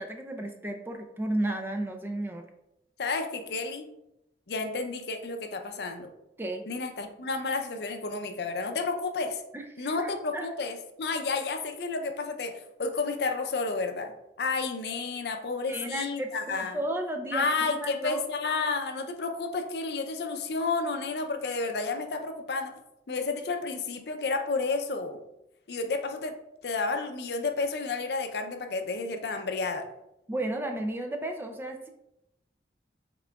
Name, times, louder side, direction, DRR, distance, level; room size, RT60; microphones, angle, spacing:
voice 1, 0.0-2.5 6.4-6.6 9.5-10.5 15.7-18.2 30.3-31.9, right 1 dB, 10° right, 4 dB, 0.3 m, -33 dB
voice 2, 3.0-3.9 4.5-6.1 6.7-9.4 9.8-16.8 17.3-22.7 23.1-25.2 25.7-26.4 26.6-29.9, left 3 dB, 65° left, 6 dB, 0.5 m, -31 dB
5.8 x 3.7 x 2.3 m, 0.86 s
head